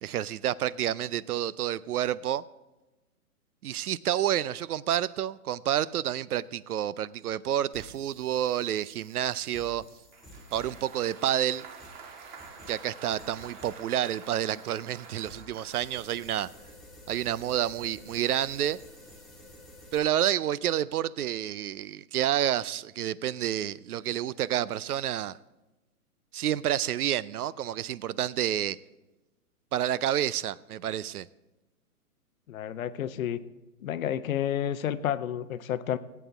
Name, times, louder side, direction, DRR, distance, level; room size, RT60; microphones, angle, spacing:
voice 1, 0.0-2.4 3.6-9.8 10.5-11.6 12.7-16.5 17.1-18.8 19.9-25.4 26.3-28.8 29.7-31.3, right 11 dB, 80° right, 20 dB, 0.6 m, -29 dB
sound 1, 7.7-20.0, left 1 dB, ahead, 1.5 m, -52 dB
Applause, 10.1-16.1, right 5 dB, 30° right, 1.4 m, -48 dB
voice 2, 32.5-33.4 33.8-36.0, left 10 dB, 65° left, 13 dB, 0.8 m, -30 dB
18.0 x 8.4 x 3.5 m, 1.1 s
hypercardioid pair, 145°, 45 cm